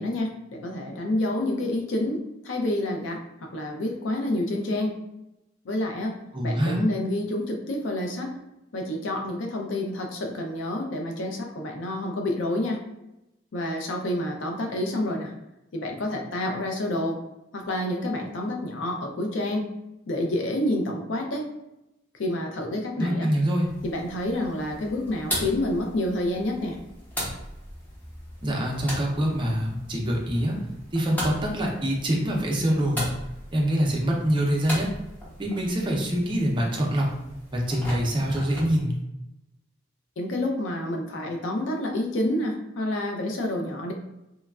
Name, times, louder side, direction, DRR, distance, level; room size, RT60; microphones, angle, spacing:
voice 1, 0.0-5.0 5.6-6.1 6.4-8.3 8.7-12.8 13.5-15.3 15.7-17.2 17.5-19.7 20.1-21.5 22.2-23.3 23.8-26.8 40.2-43.9, left 1 dB, 75° left, 2 dB, 0.5 m, -28 dB
voice 2, 6.3-6.8 23.0-23.7 28.4-30.6 30.9-33.1 33.5-34.9 35.4-37.1 37.5-38.9, equal, 25° right, -1 dB, 0.5 m, -25 dB
sound 1, 23.6-38.8, equal, 10° left, 0.7 m, -38 dB
3.0 x 2.2 x 2.3 m, 0.91 s
head